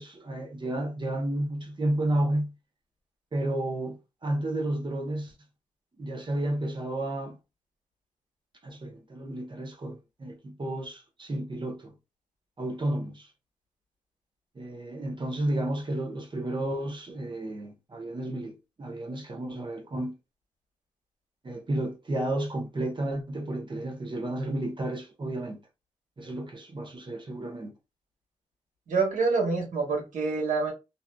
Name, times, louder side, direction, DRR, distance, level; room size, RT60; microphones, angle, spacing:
voice 1, 0.0-2.5 3.3-4.0 4.2-5.3 6.0-7.4 8.6-11.9 12.6-13.3 14.6-20.1 21.4-25.6 26.2-27.7, right 1 dB, 40° right, 0.8 m, -32 dB
voice 2, 28.9-30.7, right 4 dB, 85° right, 1.3 m, -26 dB
2.7 x 2.4 x 2.2 m
cardioid pair, 60°, 13 cm